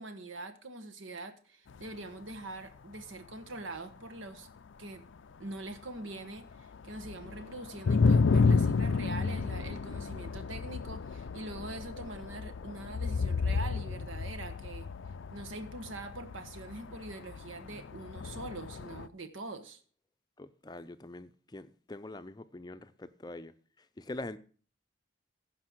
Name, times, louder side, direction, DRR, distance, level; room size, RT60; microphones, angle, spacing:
voice 1, 0.0-4.5 4.8-5.0 5.4-14.9 15.3-19.8, right 2 dB, 85° right, 1.3 m, -43 dB
sound 1, 1.7-1.8 6.4-6.5 6.7-19.1, left 4 dB, 75° left, 0.4 m, -31 dB
voice 2, 20.4-24.4, left 2 dB, 20° left, 0.5 m, -44 dB
15.5 x 5.4 x 6.1 m
head